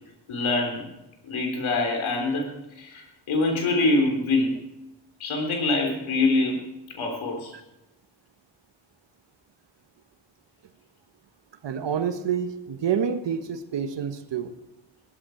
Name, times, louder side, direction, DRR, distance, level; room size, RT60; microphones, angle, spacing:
voice 1, 0.3-0.9 1.2-4.6 5.2-7.5, left 2 dB, 75° left, 3 dB, 3.8 m, -25 dB
voice 2, 11.6-14.5, right 7 dB, 60° right, 10 dB, 1.5 m, -28 dB
16.0 x 12.5 x 4.6 m, 0.92 s
supercardioid pair, 45°, 47 cm